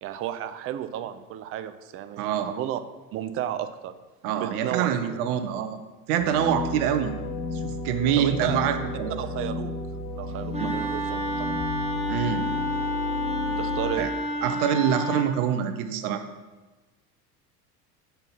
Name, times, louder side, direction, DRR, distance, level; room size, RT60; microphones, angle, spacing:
voice 1, 0.0-2.8 3.1-3.9 4.4-5.2 8.2-8.6 9.2-9.7 10.1-11.6 13.6-14.1, right 11 dB, 30° right, 11 dB, 0.5 m, -33 dB
voice 2, 2.2-2.5 4.2-5.8 6.1-7.1 7.6-9.2 10.6-10.7 12.1-12.5 14.0-14.1 14.4-16.2, right 9 dB, 60° right, 9 dB, 0.9 m, -25 dB
sound 1, 6.2-14.0, left 3 dB, 85° left, 1.2 m, -33 dB
Wind instrument woodwind instrument, 10.5-15.4, equal, 15° right, 1.0 m, -30 dB
5.7 x 5.3 x 5.9 m, 1.2 s
hypercardioid pair, 80°, 49 cm